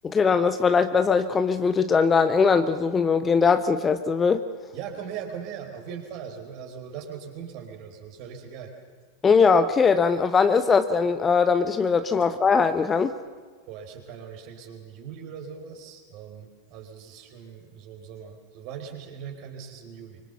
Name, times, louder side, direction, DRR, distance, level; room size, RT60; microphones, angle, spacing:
voice 1, 0.0-4.4 9.2-13.1, left 5 dB, 20° left, 11 dB, 1.0 m, -21 dB
voice 2, 4.7-8.7 12.2-12.3 13.7-20.2, right 7 dB, 45° right, 4 dB, 4.5 m, -40 dB
25.0 x 25.0 x 7.0 m, 1.5 s
figure-of-eight pair, 90°, 0 cm